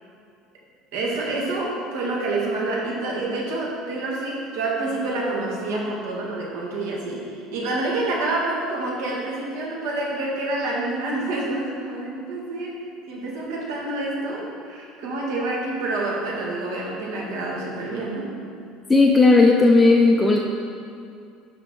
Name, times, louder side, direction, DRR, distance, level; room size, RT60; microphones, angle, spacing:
voice 1, 0.9-18.3, right 2 dB, 90° right, -3 dB, 1.9 m, -28 dB
voice 2, 18.9-20.4, left 3 dB, 10° left, 0 dB, 0.4 m, -15 dB
10.5 x 4.7 x 3.8 m, 2.4 s
cardioid pair, 165°, 0 cm